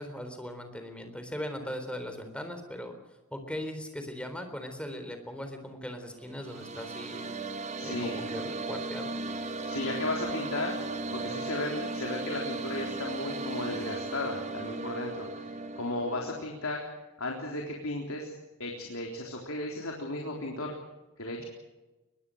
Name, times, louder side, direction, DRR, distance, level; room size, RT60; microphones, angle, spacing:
voice 1, 0.0-3.0 3.3-7.2 7.8-9.1 11.3-11.4, equal, 5° left, 7 dB, 3.8 m, -39 dB
sound 1, 6.2-16.4, right 3 dB, 30° right, 1.5 m, -36 dB
voice 2, 7.8-8.2 9.7-10.7 11.1-15.5 15.8-16.8 17.2-18.3 18.6-20.8 21.2-21.4, left 2 dB, 70° left, 0 dB, 3.7 m, -35 dB
23.0 x 21.5 x 6.5 m, 1.1 s
head